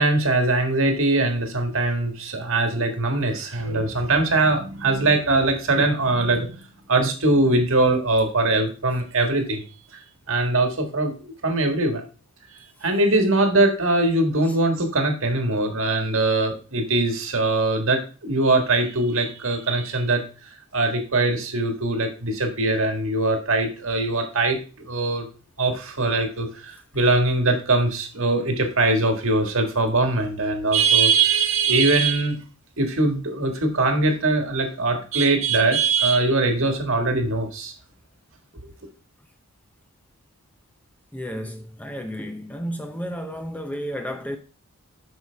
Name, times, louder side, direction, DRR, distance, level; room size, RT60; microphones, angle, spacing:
voice 1, 0.0-6.6 6.9-9.6 9.9-12.0 12.5-20.2 20.7-25.3 25.6-32.4 32.8-37.7, right 2 dB, 65° right, 1.6 m, -22 dB
voice 2, 41.1-44.4, equal, 5° left, 0.5 m, -32 dB
8.3 x 6.2 x 3.4 m
head